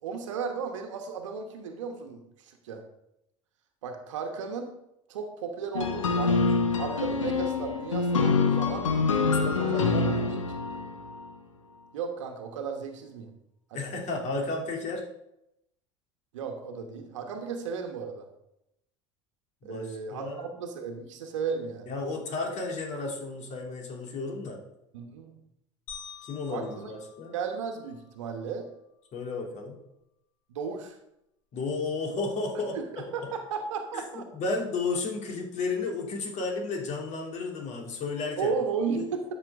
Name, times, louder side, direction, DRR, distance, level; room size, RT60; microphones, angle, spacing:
voice 1, 0.0-2.8 3.8-4.7 5.1-8.8 9.3-10.4 10.7-10.8 11.9-13.3 13.7-13.8 16.3-18.3 19.6-21.9 24.9-25.4 26.5-26.9 27.3-28.7 30.5-31.0 32.7-34.3 38.4-39.2, right 5 dB, 75° right, 4 dB, 1.2 m, -35 dB
sound 1, 5.7-11.2, left 4 dB, 90° left, 1.1 m, -26 dB
voice 2, 9.3-10.2 13.7-15.0 19.6-20.5 21.9-24.6 26.2-27.3 29.1-29.8 31.5-33.1 33.9-34.0 34.3-38.5 38.9-39.1, left 3 dB, 45° left, 1 dB, 2.8 m, -33 dB
sound 2, 25.9-28.2, left 8 dB, 65° left, 3.0 m, -47 dB
12.0 x 6.3 x 3.7 m, 0.83 s
hypercardioid pair, 75°, 16 cm